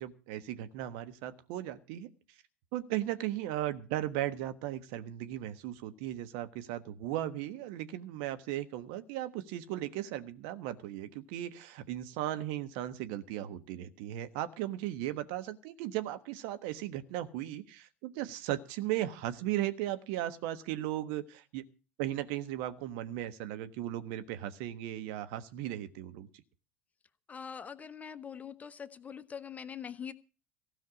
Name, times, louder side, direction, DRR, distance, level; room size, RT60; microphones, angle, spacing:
voice 1, 0.0-2.1 2.7-21.6 22.0-26.3, right 13 dB, 60° right, 10 dB, 1.3 m, -36 dB
voice 2, 27.3-30.1, left 7 dB, 25° left, 12 dB, 1.1 m, -43 dB
16.0 x 5.7 x 9.8 m, 0.35 s
hypercardioid pair, 80°, 6 cm